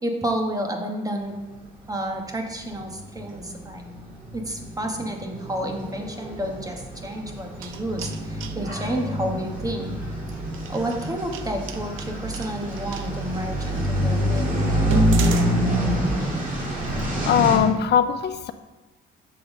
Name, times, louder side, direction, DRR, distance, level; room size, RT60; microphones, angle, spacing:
voice 1, 0.0-1.3 1.9-3.8 4.3-9.9 10.7-14.9, right 1 dB, 20° right, 3 dB, 1.1 m, -30 dB
sound 1, 2.1-2.2 2.5-17.6, equal, 40° right, 2.1 m, -27 dB
sound 2, 7.4-8.6 10.2-13.1 13.7-13.8 14.2-14.3 14.8-15.5, right 7 dB, 80° right, 0.6 m, -35 dB
voice 2, 16.9-18.5, left 8 dB, 60° left, 10 dB, 0.4 m, -21 dB
6.8 x 3.7 x 6.1 m, 1.2 s
cardioid pair, 90°, 20 cm